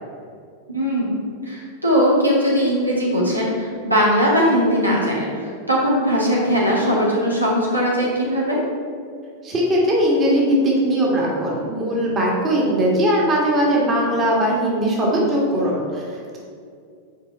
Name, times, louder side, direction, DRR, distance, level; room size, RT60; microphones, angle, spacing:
voice 1, 0.7-8.6, equal, 85° right, -4 dB, 1.5 m, -20 dB
voice 2, 9.4-16.4, equal, 25° right, -3 dB, 1.8 m, -20 dB
7.1 x 4.4 x 4.5 m, 2.3 s
figure-of-eight pair, 90°, 0 cm